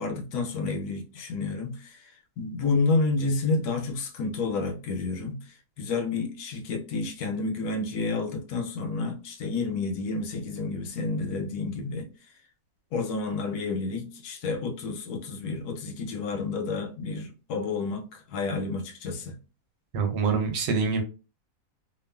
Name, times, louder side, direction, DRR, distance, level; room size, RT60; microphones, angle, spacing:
voice 1, 0.0-2.1 2.4-5.4 5.8-12.1 12.9-19.4, left 3 dB, 70° left, 1.1 m, -30 dB
voice 2, 19.9-21.0, right 5 dB, 85° right, 1.3 m, -25 dB
3.0 x 2.3 x 2.2 m
omnidirectional pair, 1.9 m